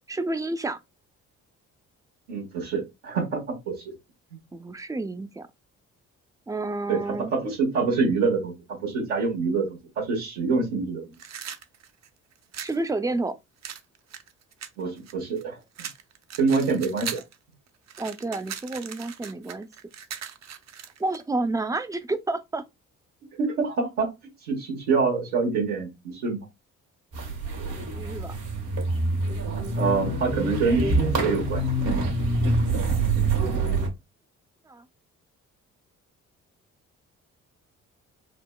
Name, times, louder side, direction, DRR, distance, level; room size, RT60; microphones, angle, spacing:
voice 1, 0.1-0.8 4.5-5.5 6.5-7.3 12.6-13.4 18.0-19.7 21.0-22.6 27.7-28.4 34.7-34.8, right 2 dB, 10° right, 0.5 m, -30 dB
voice 2, 2.3-3.9 6.9-7.0 7.3-8.5 8.8-11.0 14.8-15.6 16.4-17.2 23.4-24.1 24.5-26.4 29.7-31.7, right 4 dB, 80° right, 1.3 m, -26 dB
sound 1, 11.1-12.8 13.6-15.4 15.8-17.4 17.7-21.2, right 8 dB, 40° right, 0.7 m, -39 dB
sound 2, 27.1-33.9, right 2 dB, 60° right, 1.4 m, -26 dB
4.0 x 2.1 x 2.2 m
hypercardioid pair, 45°, 40 cm